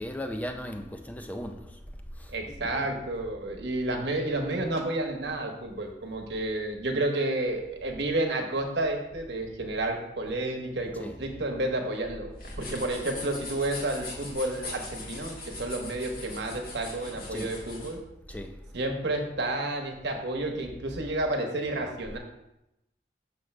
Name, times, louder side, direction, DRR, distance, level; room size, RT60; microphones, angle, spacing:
voice 1, 0.0-1.8 2.2-2.3 2.6-2.9 3.9-4.0 11.0-11.2 17.3-17.5 18.3-18.7, left 1 dB, 10° left, 0.4 m, -37 dB
voice 2, 2.3-12.3 12.6-18.0 18.7-22.2, right 2 dB, 80° right, 1.1 m, -30 dB
sound 1, 12.3-17.9, left 2 dB, 55° left, 1.5 m, -41 dB
6.5 x 3.2 x 6.0 m
head